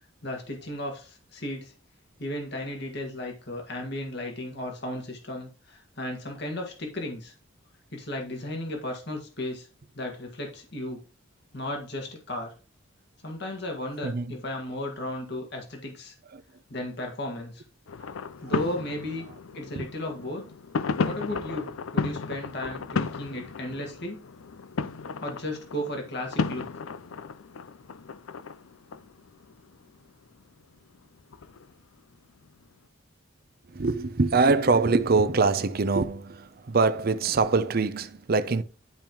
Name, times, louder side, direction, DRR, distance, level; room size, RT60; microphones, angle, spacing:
voice 1, 0.2-1.7 2.2-7.3 7.9-9.7 9.9-11.0 11.5-12.5 13.2-16.2 16.7-17.6 18.4-19.2 19.5-20.4 21.0-24.2 25.2-26.8, left 1 dB, 55° left, 1.9 m, -35 dB
voice 2, 14.0-14.4 16.3-16.4 19.8-19.9 33.7-38.6, right 4 dB, 50° right, 0.6 m, -24 dB
sound 1, 17.9-30.4 31.0-31.7 32.5-32.6, left 5 dB, 85° left, 0.5 m, -34 dB
10.5 x 5.3 x 3.0 m
head